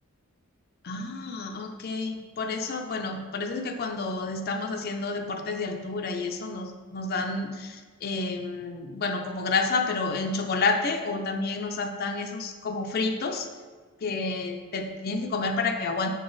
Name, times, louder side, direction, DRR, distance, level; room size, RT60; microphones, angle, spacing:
voice 1, 0.8-13.5 14.0-16.1, left 3 dB, 45° left, 4 dB, 0.4 m, -30 dB
6.9 x 3.9 x 3.8 m, 1.4 s
head